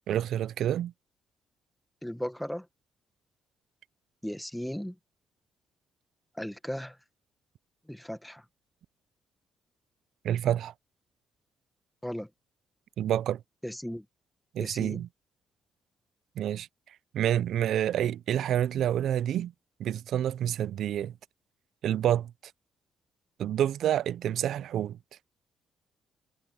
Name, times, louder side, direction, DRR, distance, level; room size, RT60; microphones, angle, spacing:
voice 1, 0.1-0.9 10.2-10.7 13.0-13.4 14.5-15.1 16.4-16.7 17.1-19.5 19.8-21.1 21.8-22.3 23.4-25.0, right 11 dB, 75° right, 0.4 m, -28 dB
voice 2, 2.0-2.7 4.2-4.9 6.4-7.0 7.9-8.4 12.0-12.3 13.6-14.0 14.6-15.0, equal, 5° left, 1.5 m, -36 dB
cardioid pair, 90°, 0 cm